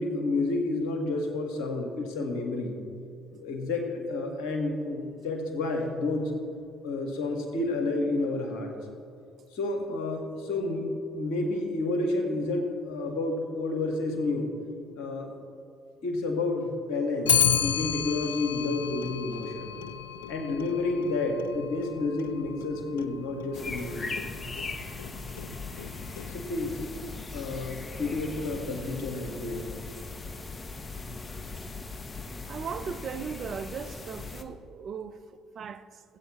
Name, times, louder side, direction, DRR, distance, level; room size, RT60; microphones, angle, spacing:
voice 1, 0.0-2.7 3.3-6.3 6.8-8.7 9.5-10.9 11.1-14.5 15.0-15.3 16.0-19.7 20.3-24.1 26.3-26.8 27.3-29.7, left 2 dB, 70° left, 1.7 m, -30 dB
Clock, 17.3-26.6, left 8 dB, 90° left, 0.4 m, -32 dB
sound 1, 23.5-34.4, left 3 dB, 30° left, 1.0 m, -39 dB
voice 2, 32.5-36.0, right 6 dB, 50° right, 0.6 m, -38 dB
18.0 x 8.5 x 3.1 m
hypercardioid pair, 55°, 0 cm